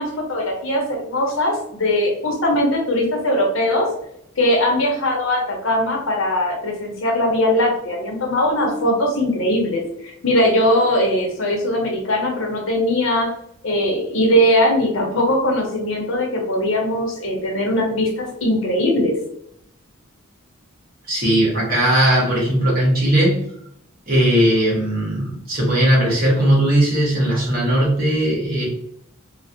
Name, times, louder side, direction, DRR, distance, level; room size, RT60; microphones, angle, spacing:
voice 1, 0.0-3.9 4.4-13.3 13.6-19.1, left 1 dB, 70° left, 0 dB, 0.9 m, -20 dB
voice 2, 21.1-23.4 24.1-28.6, right 1 dB, 45° right, -5 dB, 1.3 m, -18 dB
3.3 x 2.2 x 2.7 m, 0.72 s
head